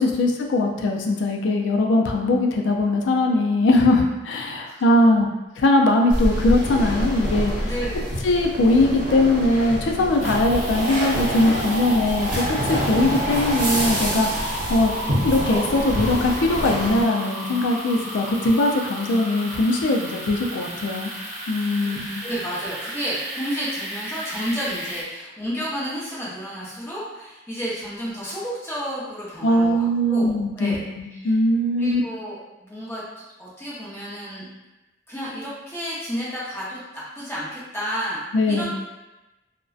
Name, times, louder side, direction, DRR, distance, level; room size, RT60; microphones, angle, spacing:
voice 1, 0.0-5.3 5.6-7.5 8.2-14.9 15.2-21.1 21.5-22.1 29.4-32.0 38.3-38.7, left 2 dB, 80° left, 1 dB, 0.4 m, -20 dB
sound 1, 6.1-17.0, equal, 60° right, 0.6 m, -27 dB
voice 2, 7.6-8.2 21.8-30.8 31.2-31.3 31.7-33.0 33.4-34.5 35.1-38.7, equal, 15° left, -8 dB, 0.6 m, -31 dB
sound 2, 10.2-25.0, equal, 35° right, 0.9 m, -32 dB
2.5 x 2.1 x 2.3 m, 1.0 s
head